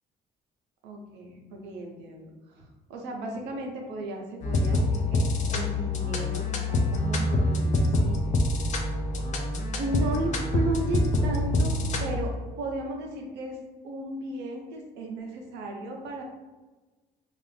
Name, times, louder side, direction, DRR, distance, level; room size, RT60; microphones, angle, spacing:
voice 1, 0.8-8.2 9.8-11.7 12.0-13.6 13.8-16.2, right 2 dB, 85° right, 1 dB, 0.7 m, -35 dB
sound 1, 4.4-12.2, left 1 dB, 45° left, 0.5 m, -26 dB
2.5 x 2.4 x 3.3 m, 1.2 s
cardioid pair, 110°, 17 cm